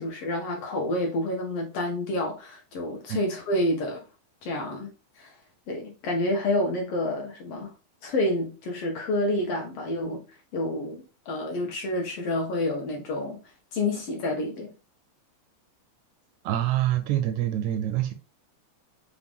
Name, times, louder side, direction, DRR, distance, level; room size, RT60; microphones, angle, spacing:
voice 1, 0.0-4.0 4.4-4.9 5.2-5.3 5.7-7.7 8.0-10.2 10.5-13.4 13.7-14.7, left 1 dB, 70° left, 1.5 m, -28 dB
voice 2, 16.4-18.1, right 12 dB, 80° right, 1.7 m, -26 dB
5.0 x 2.4 x 3.5 m
omnidirectional pair, 3.5 m